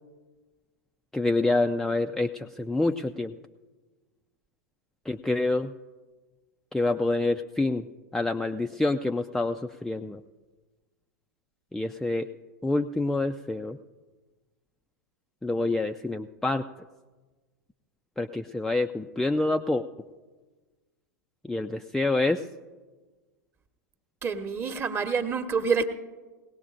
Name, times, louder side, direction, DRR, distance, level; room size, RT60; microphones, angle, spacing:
voice 1, 1.1-3.3 5.1-5.7 6.7-7.8 8.1-10.2 11.7-12.3 12.6-13.8 15.4-16.6 18.2-19.8 21.5-22.4, left 2 dB, 5° left, 5 dB, 0.4 m, -27 dB
voice 2, 24.2-25.9, right 5 dB, 25° right, 9 dB, 1.1 m, -27 dB
20.5 x 18.0 x 2.5 m, 1.3 s
figure-of-eight pair, 95°, 10 cm